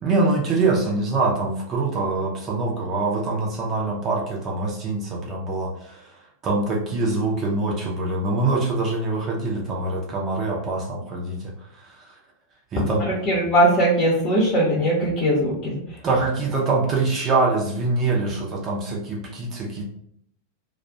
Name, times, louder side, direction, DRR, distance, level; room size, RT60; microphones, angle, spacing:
voice 1, 0.0-6.0 6.4-11.5 11.8-12.0 12.7-13.1 16.0-19.8, right 3 dB, 30° right, -1 dB, 0.6 m, -24 dB
voice 2, 13.1-15.8, right 1 dB, 35° left, -4 dB, 0.8 m, -20 dB
2.4 x 2.2 x 3.9 m, 0.70 s
figure-of-eight pair, 90°, 0 cm